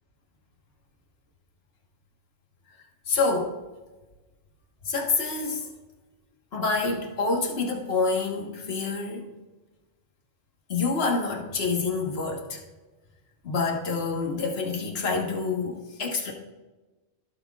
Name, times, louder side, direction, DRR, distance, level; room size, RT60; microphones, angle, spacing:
voice 1, 3.1-3.6 4.8-5.7 6.5-9.2 10.7-12.6 13.4-16.3, left 4 dB, 55° left, 0 dB, 1.6 m, -27 dB
16.0 x 6.5 x 2.4 m, 1.2 s
omnidirectional pair, 1.2 m